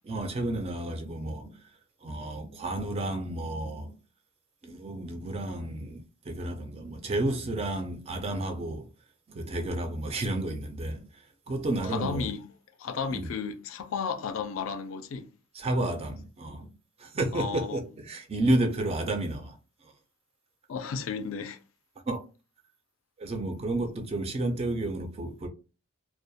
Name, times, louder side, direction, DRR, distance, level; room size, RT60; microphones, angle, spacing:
voice 1, 0.1-1.6 2.0-4.0 4.6-8.9 9.3-11.1 11.5-12.3 13.1-13.3 15.5-16.7 17.0-19.6 22.1-22.2 23.2-25.5, right 1 dB, 30° right, 0.4 m, -31 dB
voice 2, 11.8-12.4 12.8-15.3 17.3-17.8 20.7-21.6, left 5 dB, 65° left, 0.3 m, -33 dB
2.3 x 2.1 x 2.6 m
head